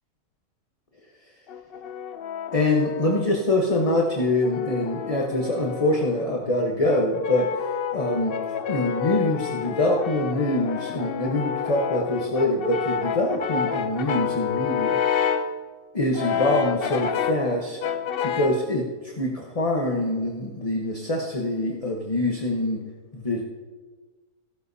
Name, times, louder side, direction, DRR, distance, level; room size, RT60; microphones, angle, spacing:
Brass instrument, 1.5-3.4 4.2-6.2 6.9-15.6 16.1-17.5 17.8-18.6, left 7 dB, 70° left, 0.5 m, -29 dB
voice 1, 2.5-7.5 7.9-8.4 8.7-15.0 15.9-17.8 18.2-22.8 23.1-23.4, left 1 dB, 25° left, -1 dB, 1.0 m, -24 dB
16.0 x 13.0 x 2.7 m, 1.4 s
omnidirectional pair, 1.6 m